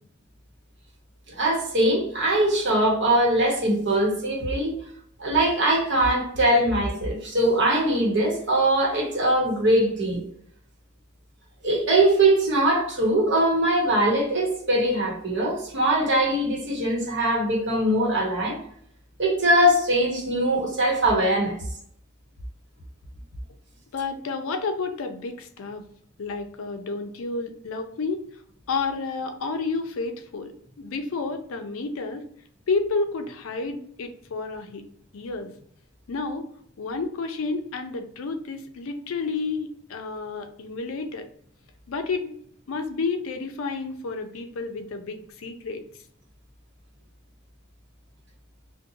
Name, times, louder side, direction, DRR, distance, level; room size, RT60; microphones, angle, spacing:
voice 1, 1.3-4.7 5.2-10.2 11.6-18.6 19.2-21.6, right 1 dB, 55° right, 1.0 m, -22 dB
voice 2, 23.9-25.9 26.2-28.2 28.7-32.3 32.7-34.8 35.1-35.5 36.1-36.5 36.8-41.3 41.9-42.4 42.7-45.8, left 4 dB, 75° left, 0.4 m, -30 dB
2.6 x 2.1 x 2.6 m
head